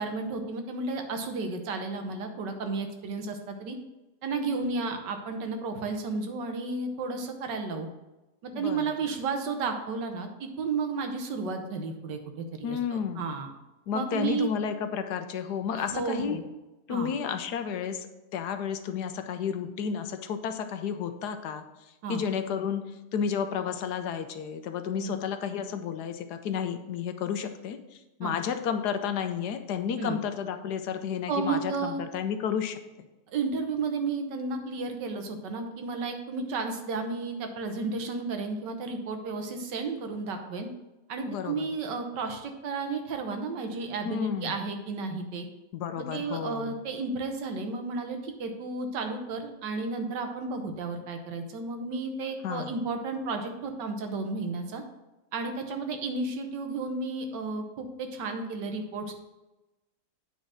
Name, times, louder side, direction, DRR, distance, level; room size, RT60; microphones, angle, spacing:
voice 1, 0.0-3.8 4.2-7.9 8.4-13.5 13.9-14.5 15.7-16.4 16.9-17.1 22.0-22.2 25.0-25.2 28.2-28.4 30.0-30.2 31.3-32.0 33.3-40.7 41.1-45.5 46.1-54.8 55.3-59.1, right 4 dB, 85° right, 5 dB, 1.7 m, -32 dB
voice 2, 8.5-8.9 12.6-13.2 13.9-16.4 16.9-21.6 22.1-22.9 23.1-33.1 41.3-41.7 44.0-44.6 45.7-46.8 52.4-52.7, left 7 dB, 75° left, 8 dB, 1.3 m, -32 dB
8.8 x 4.1 x 6.2 m, 1.0 s
omnidirectional pair, 1.8 m